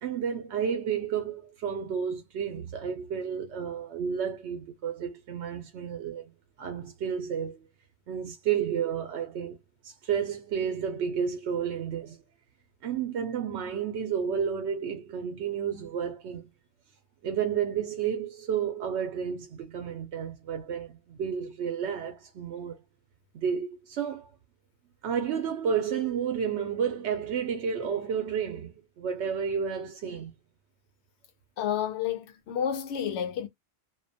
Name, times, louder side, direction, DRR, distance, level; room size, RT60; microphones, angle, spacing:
voice 1, 0.0-6.3 6.6-7.7 8.1-9.6 9.8-12.2 12.8-16.5 17.2-22.8 23.3-24.3 25.0-30.3, right 7 dB, 90° right, 0.9 m, -31 dB
voice 2, 31.6-33.5, left 9 dB, 85° left, 0.9 m, -30 dB
2.4 x 2.2 x 2.6 m
omnidirectional pair, 1.1 m